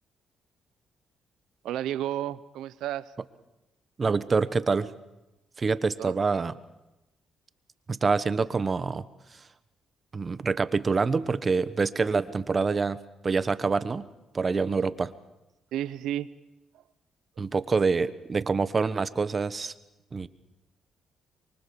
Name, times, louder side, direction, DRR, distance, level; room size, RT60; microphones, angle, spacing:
voice 1, 1.6-3.1 6.0-6.2 15.7-16.3, right 12 dB, 85° right, 16 dB, 0.8 m, -32 dB
voice 2, 4.0-4.9 5.6-6.5 7.9-9.0 10.1-14.1 14.3-15.1 17.4-19.7 20.1-20.3, right 4 dB, 35° right, 14 dB, 1.1 m, -26 dB
24.5 x 24.0 x 7.0 m, 0.99 s
cardioid pair, 90°, 0 cm